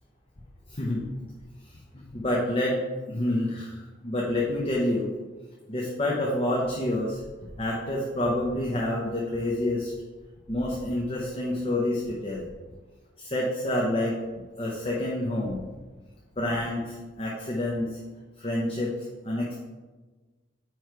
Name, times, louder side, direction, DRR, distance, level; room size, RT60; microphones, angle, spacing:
voice 1, 0.7-1.1 1.6-2.8 3.1-5.1 5.7-7.2 7.6-9.9 10.5-12.5 13.2-14.2 14.6-15.7 16.4-18.0 18.4-19.6, left 1 dB, 30° left, -4 dB, 0.8 m, -28 dB
9.3 x 3.2 x 4.6 m, 1.3 s
head